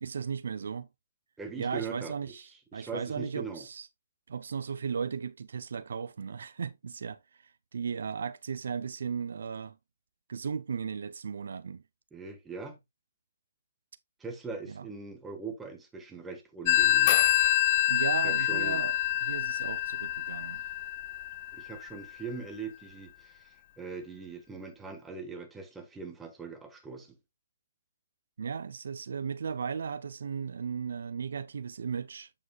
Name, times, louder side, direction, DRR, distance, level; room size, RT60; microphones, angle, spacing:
voice 1, 0.0-0.9 1.6-3.9 4.3-9.8 10.3-11.8 14.7-14.9 17.9-20.6 28.4-32.3, right 6 dB, 65° right, 0.4 m, -36 dB
voice 2, 1.4-2.3 2.7-3.6 12.1-12.8 14.2-17.3 18.2-18.8 21.5-27.2, right 4 dB, 10° right, 1.5 m, -41 dB
Telephone, 16.7-22.0, left 13 dB, 35° left, 0.3 m, -26 dB
8.3 x 7.4 x 2.3 m
figure-of-eight pair, 140°, 0 cm